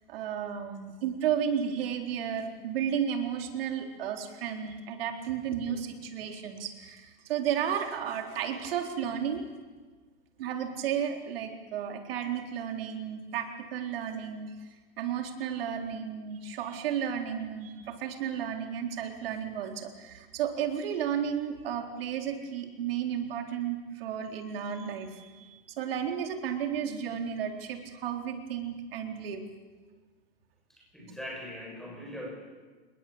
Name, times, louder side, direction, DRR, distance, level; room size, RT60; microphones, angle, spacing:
voice 1, 0.1-9.4 10.4-14.5 15.0-29.4, right 8 dB, 65° right, 4 dB, 4.1 m, -33 dB
voice 2, 30.9-32.3, equal, ahead, -1 dB, 7.3 m, -40 dB
27.5 x 21.0 x 8.8 m, 1.4 s
supercardioid pair, 165°, 32 cm